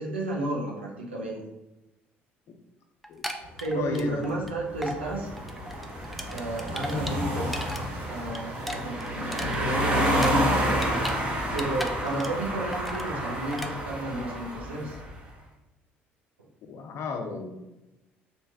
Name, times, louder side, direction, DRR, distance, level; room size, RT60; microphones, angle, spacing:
voice 1, 0.0-1.4 3.6-5.3 6.3-7.6 8.1-11.1 11.5-15.0, right 1 dB, 90° right, -3 dB, 0.7 m, -32 dB
sound 1, 3.0-4.5 4.8-5.0 5.4-7.8 8.1-11.2 11.5-12.5 12.7-13.1 13.5-13.7, equal, ahead, 0.4 m, -37 dB
sound 2, 3.4-13.4, equal, 55° right, 1.3 m, -40 dB
voice 2, 3.7-4.2 6.7-7.0 16.6-17.7, left 5 dB, 50° left, 4 dB, 0.5 m, -35 dB
sound 3, 4.8-15.1, equal, 20° right, 1.0 m, -30 dB
3.1 x 2.5 x 3.5 m, 0.97 s
figure-of-eight pair, 55°, 6 cm